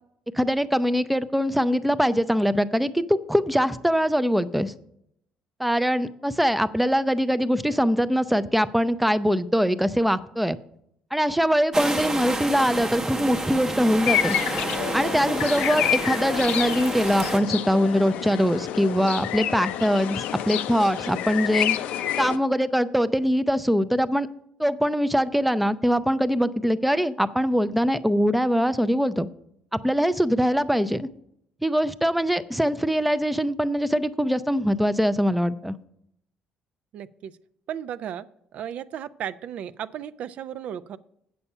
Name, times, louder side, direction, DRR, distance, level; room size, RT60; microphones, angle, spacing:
voice 1, 0.3-4.7 5.6-10.6 11.1-14.4 14.9-21.8 22.2-24.3 24.6-29.3 29.8-31.1 31.6-35.8, equal, 5° right, 13 dB, 0.4 m, -22 dB
sound 1, 11.7-17.4, right 2 dB, 20° right, 0.8 m, -30 dB
sound 2, 14.0-22.4, left 11 dB, 80° left, 0.5 m, -28 dB
voice 2, 36.9-37.4 37.7-38.3 38.5-41.0, right 9 dB, 60° right, 14 dB, 0.5 m, -35 dB
8.4 x 6.9 x 5.5 m, 0.74 s
cardioid pair, 115°, 2 cm